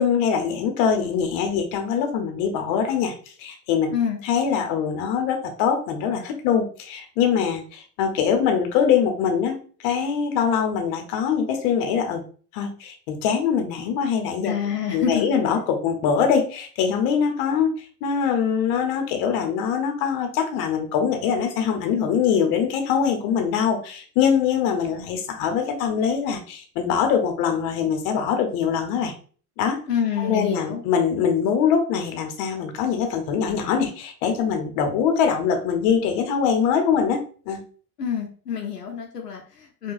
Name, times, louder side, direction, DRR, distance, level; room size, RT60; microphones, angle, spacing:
voice 1, 0.0-3.1 3.4-3.9 4.2-9.6 9.8-12.2 12.5-14.5 14.9-29.1 29.6-29.8 30.2-37.6, left 7 dB, 50° left, 5 dB, 0.8 m, -23 dB
voice 2, 14.4-15.3 29.9-30.8 38.0-39.9, left 8 dB, 85° left, 2 dB, 0.6 m, -27 dB
4.6 x 2.3 x 2.4 m, 0.41 s
figure-of-eight pair, 70°, 46 cm